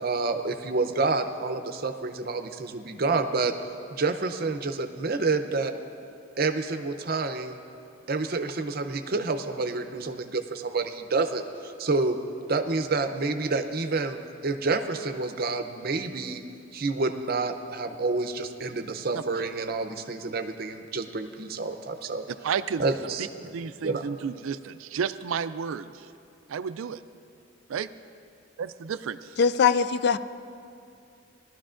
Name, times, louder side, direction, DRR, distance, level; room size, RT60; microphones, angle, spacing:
voice 1, 0.0-3.5 3.9-5.7 6.4-7.6 8.1-12.2 12.5-14.2 14.4-16.4 16.7-22.2 22.8-23.5 23.8-24.1, right 3 dB, 50° right, 8 dB, 0.6 m, -28 dB
voice 2, 22.4-22.8 23.5-26.1 26.5-27.0 27.7-27.9 28.9-29.3, right 7 dB, 90° right, 13 dB, 0.4 m, -31 dB
voice 3, 29.4-30.2, left 6 dB, 55° left, 13 dB, 0.3 m, -21 dB
19.0 x 12.5 x 2.5 m, 2.5 s
head